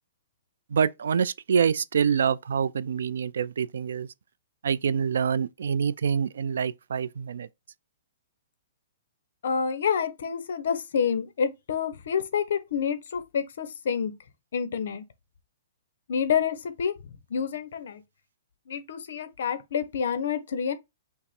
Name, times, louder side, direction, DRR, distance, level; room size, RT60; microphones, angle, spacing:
voice 1, 0.7-4.1 4.6-7.5, right 7 dB, 70° right, 0.3 m, -26 dB
voice 2, 9.4-14.1 14.5-15.0 16.1-17.0 17.3-18.0 18.7-20.7, left 7 dB, 55° left, 0.8 m, -28 dB
5.7 x 2.1 x 4.2 m
hypercardioid pair, 180°, 0 cm